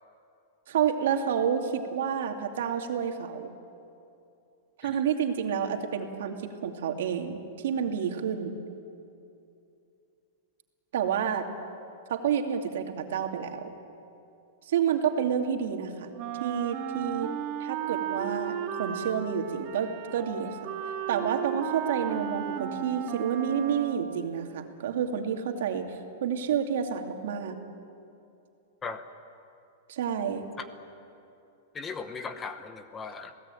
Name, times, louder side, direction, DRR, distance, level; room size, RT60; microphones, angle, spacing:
voice 1, 0.7-3.5 4.8-8.6 10.9-11.5 12.1-13.7 14.7-16.1 16.4-17.3 17.6-20.6 21.1-27.6 29.9-30.5, right 8 dB, 65° right, 4 dB, 2.5 m, -29 dB
Wind instrument woodwind instrument, 16.2-24.3, right 8 dB, 30° right, 2.0 m, -35 dB
voice 2, 31.7-33.3, left 4 dB, 15° left, 9 dB, 0.9 m, -38 dB
28.0 x 17.5 x 9.1 m, 2.7 s
supercardioid pair, 170°, 0 cm